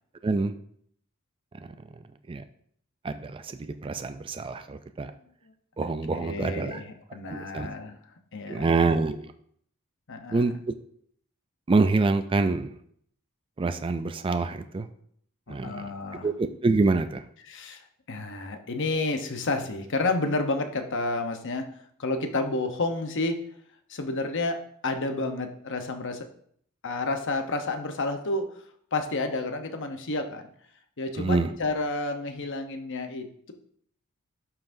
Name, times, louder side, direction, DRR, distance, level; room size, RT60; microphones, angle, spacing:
voice 1, 0.2-0.5 2.3-2.4 3.0-5.1 5.8-6.8 7.3-7.7 8.5-9.3 10.3-10.5 11.7-12.7 13.6-14.9 15.5-15.9 16.2-17.2 31.2-31.6, right 3 dB, 25° right, 9 dB, 0.4 m, -26 dB
voice 2, 6.1-7.9 8.3-8.7 10.1-10.6 15.5-16.3 17.5-21.7 22.0-23.4 23.9-26.3 26.8-28.5 28.9-30.5 31.0-33.5, left 2 dB, 60° left, 6 dB, 0.9 m, -30 dB
11.5 x 5.7 x 2.7 m, 0.64 s
head